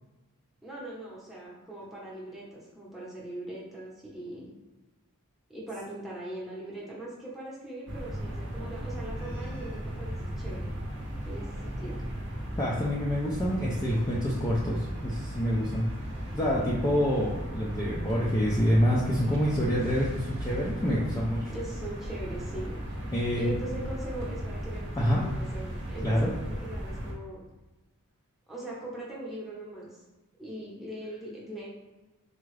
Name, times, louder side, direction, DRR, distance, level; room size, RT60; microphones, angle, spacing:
voice 1, 0.6-4.5 5.5-10.7 11.2-12.0 21.5-22.8 23.3-27.4 28.5-29.9 30.4-31.7, right 1 dB, ahead, -6 dB, 0.9 m, -40 dB
sound 1, 7.9-27.1, equal, 55° right, 0.8 m, -36 dB
voice 2, 12.6-15.9 16.3-21.4 23.1-23.5 25.0-25.2 26.0-26.3, equal, 15° left, -6 dB, 0.4 m, -27 dB
3.6 x 2.3 x 3.2 m, 1.1 s
head